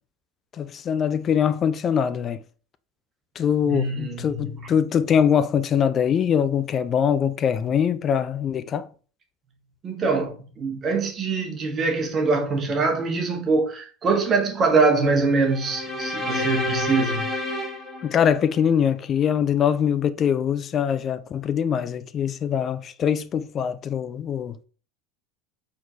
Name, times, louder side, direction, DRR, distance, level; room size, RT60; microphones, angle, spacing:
voice 1, 0.6-2.4 3.4-8.9 18.0-24.6, left 8 dB, 35° left, 0.4 m, -23 dB
voice 2, 3.6-4.7 9.8-17.3, right 3 dB, 30° right, 1.2 m, -23 dB
sound 1, 15.4-18.8, left 1 dB, 5° left, 1.9 m, -30 dB
4.4 x 3.7 x 2.8 m
figure-of-eight pair, 75°, 0 cm